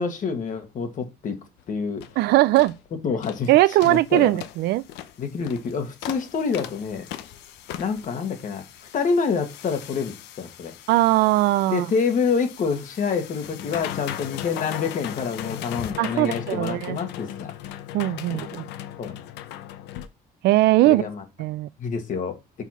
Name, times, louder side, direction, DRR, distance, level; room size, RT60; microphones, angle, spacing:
voice 1, 0.0-1.4 1.7-2.0 3.0-3.5 3.8-4.4 5.2-7.1 7.8-8.6 8.9-10.7 11.7-17.8 18.3-18.5 19.0-19.2 20.9-21.2 21.8-22.4, left 5 dB, 50° left, 1.7 m, -27 dB
sound 1, 1.6-1.7 2.0-2.2 2.5-2.8 3.2-3.5 3.8-20.1, left 12 dB, 90° left, 0.7 m, -38 dB
voice 2, 2.2-2.7 3.5-4.8 10.9-11.9 16.0-17.0 17.9-18.6 20.4-21.0 21.4-21.7, right 17 dB, 80° right, 0.4 m, -19 dB
5.7 x 4.6 x 5.8 m
cardioid pair, 110°, 17 cm